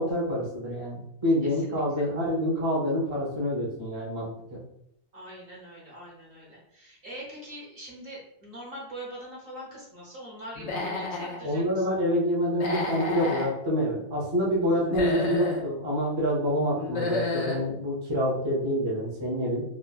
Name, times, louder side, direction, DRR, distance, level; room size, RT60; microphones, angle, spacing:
voice 1, 0.0-4.6 11.4-19.6, equal, 30° right, -6 dB, 0.7 m, -27 dB
voice 2, 1.4-2.1 5.1-11.9 14.7-14.9, right 1 dB, 55° right, -4 dB, 1.1 m, -43 dB
Human voice / Animal, 10.6-11.4 12.5-13.5 14.8-15.6 16.8-17.6, left 3 dB, 85° left, 1.0 m, -30 dB
3.3 x 2.1 x 2.3 m, 0.78 s
omnidirectional pair, 1.1 m